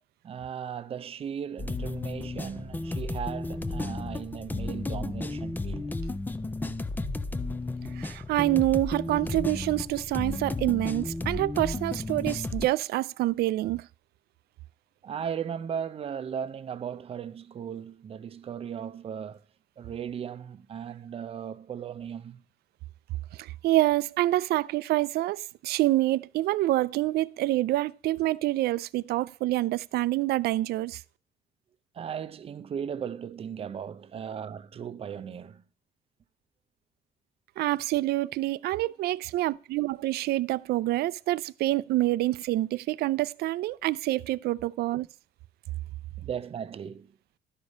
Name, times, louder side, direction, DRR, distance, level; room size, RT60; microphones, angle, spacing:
voice 1, 0.2-5.9 15.0-19.4 19.8-22.4 31.9-35.6 46.2-47.1, right 8 dB, 35° right, 0.6 m, -37 dB
sound 1, 1.6-12.7, left 2 dB, 10° left, 0.5 m, -33 dB
voice 2, 8.0-13.8 23.4-31.0 37.6-45.1, right 16 dB, 85° right, 0.4 m, -27 dB
12.0 x 4.9 x 5.3 m
cardioid pair, 145°, 16 cm